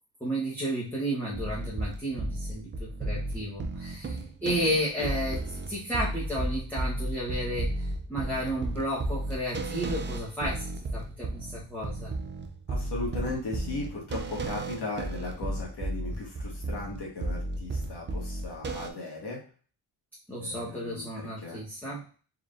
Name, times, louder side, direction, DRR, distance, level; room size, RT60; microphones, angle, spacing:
voice 1, 0.2-12.1 20.3-22.0, equal, 5° left, -8 dB, 1.1 m, -32 dB
sound 1, 1.3-18.9, right 2 dB, 25° right, 0.4 m, -34 dB
voice 2, 12.7-19.4 20.4-21.6, left 2 dB, 60° left, -3 dB, 1.8 m, -37 dB
4.5 x 3.7 x 2.5 m, 0.38 s
wide cardioid pair, 155°, 45 cm